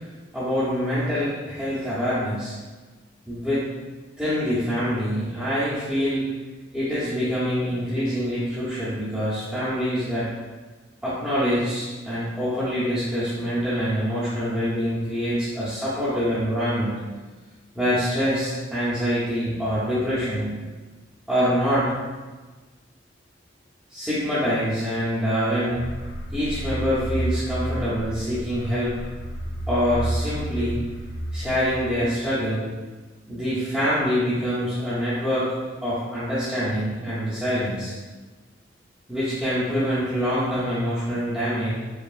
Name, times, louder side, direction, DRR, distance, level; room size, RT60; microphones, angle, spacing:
voice 1, 0.3-2.5 3.3-3.6 4.2-6.3 6.7-10.3 11.0-17.0 17.7-20.5 21.3-21.9 23.9-25.8 26.3-29.0 29.7-30.8 31.3-32.7 33.3-35.5 35.8-37.9 39.1-41.7, equal, ahead, -14 dB, 0.8 m, -25 dB
sound 1, 25.7-32.2, right 1 dB, 75° left, 0.5 m, -31 dB
4.8 x 2.9 x 2.5 m, 1.3 s
head